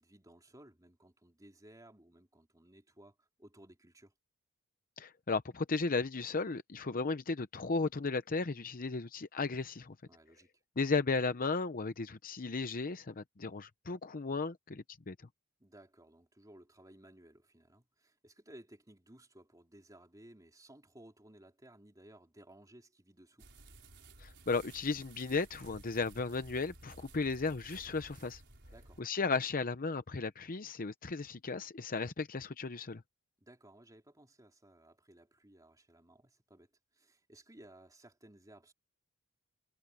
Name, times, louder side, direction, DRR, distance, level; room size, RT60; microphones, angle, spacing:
voice 1, 0.0-4.1 10.0-10.5 15.6-23.5 28.7-29.0 33.4-38.7, right 1 dB, 15° right, 3.5 m, -58 dB
voice 2, 5.0-9.9 10.8-15.1 24.2-28.4 29.0-33.0, left 4 dB, 40° left, 0.7 m, -35 dB
sound 1, 23.4-29.0, right 2 dB, 50° right, 5.0 m, -55 dB
head